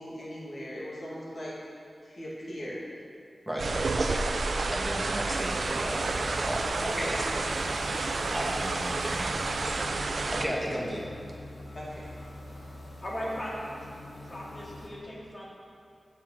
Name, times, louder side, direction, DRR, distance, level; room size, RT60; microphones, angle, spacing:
voice 1, 0.0-1.5 2.0-2.8 6.9-7.1 7.5-7.7 8.0-8.1 11.7-12.1, equal, 55° left, -6 dB, 2.5 m, -39 dB
voice 2, 3.4-7.5 8.3-9.4 10.3-11.0, equal, 5° right, -3 dB, 1.7 m, -35 dB
sound 1, 3.6-10.5, right 3 dB, 70° right, 0.5 m, -30 dB
sound 2, 5.3-14.9, left 1 dB, 75° left, 2.0 m, -44 dB
voice 3, 13.0-13.6 14.2-15.5, equal, 35° left, -5 dB, 2.3 m, -37 dB
8.8 x 7.5 x 4.7 m, 2.4 s
wide cardioid pair, 70°, 0 cm